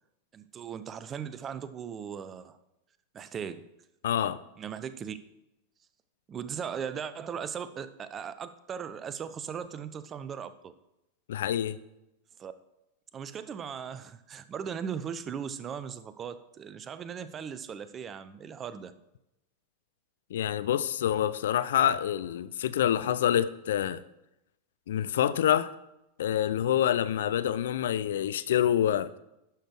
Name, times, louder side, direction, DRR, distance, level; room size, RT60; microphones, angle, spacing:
voice 1, 0.3-2.6 3.1-3.7 4.6-5.2 6.3-10.7 12.4-12.5 13.1-18.9, right 7 dB, 25° right, 14 dB, 0.5 m, -38 dB
voice 2, 4.0-4.4 11.3-11.8 20.3-24.0 24.9-25.7 26.2-29.1, left 10 dB, 60° left, 15 dB, 0.3 m, -26 dB
11.0 x 6.0 x 3.1 m, 0.90 s
figure-of-eight pair, 90°, 0 cm